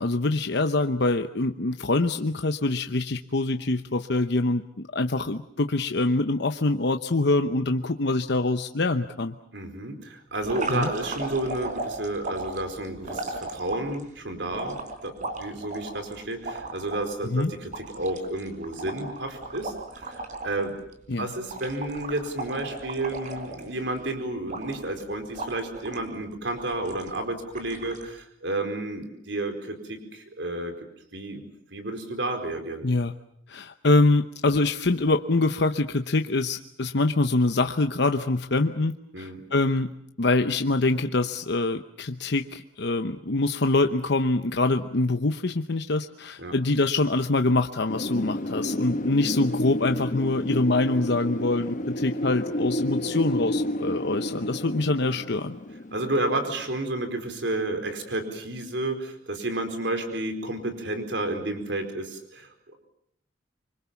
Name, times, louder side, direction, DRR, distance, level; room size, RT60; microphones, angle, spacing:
voice 1, 0.0-4.6 4.9-9.3 10.7-10.9 17.2-17.5 21.1-21.3 32.8-33.1 33.5-39.9 40.2-55.6, left 2 dB, 65° left, 7 dB, 0.9 m, -24 dB
voice 2, 9.5-14.8 15.0-20.8 21.2-30.7 31.1-32.8 39.1-39.4 46.4-46.5 55.9-62.8, right 2 dB, 65° right, 7 dB, 4.7 m, -31 dB
sound 1, 10.4-14.0 14.5-17.0 17.4-17.5 17.7-20.6 20.9-21.1 21.5-24.0 24.5-25.0 25.3-26.0 26.6-27.2 27.5-28.0, right 2 dB, 45° right, 4.3 m, -35 dB
Wind, 47.9-56.6, equal, 45° left, 1.2 m, -31 dB
26.5 x 25.0 x 7.1 m, 0.70 s
head